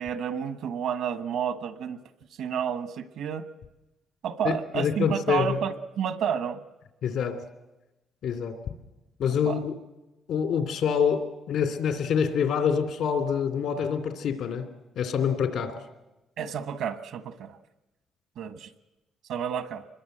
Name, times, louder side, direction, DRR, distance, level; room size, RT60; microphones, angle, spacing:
voice 1, 0.0-2.0 2.4-3.4 4.2-6.6 9.5-9.6 16.4-17.6 18.4-18.7 19.3-19.8, right 8 dB, 80° right, 11 dB, 1.3 m, -30 dB
voice 2, 4.4-5.6 7.0-7.4 8.2-8.5 9.2-9.7 10.3-14.7 15.0-15.7, left 7 dB, 80° left, 8 dB, 2.6 m, -26 dB
25.0 x 21.5 x 7.9 m, 1.0 s
cardioid pair, 90°, 0 cm